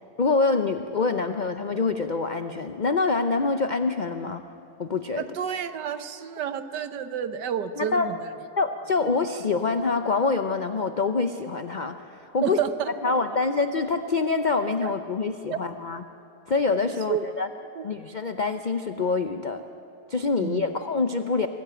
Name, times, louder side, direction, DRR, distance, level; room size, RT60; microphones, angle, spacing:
voice 1, 0.2-4.4 4.8-5.2 7.8-8.1 8.6-12.0 12.3-12.6 13.0-16.0 16.5-17.5 17.8-19.6 20.1-21.5, left 4 dB, 65° left, 8 dB, 0.4 m, -25 dB
voice 2, 5.2-8.3 12.4-13.1 14.8-14.9 15.5-15.6 17.1-17.3 17.8-17.9 20.4-20.7, right 9 dB, 85° right, 11 dB, 1.5 m, -30 dB
23.5 x 15.0 x 8.8 m, 2.7 s
omnidirectional pair, 1.8 m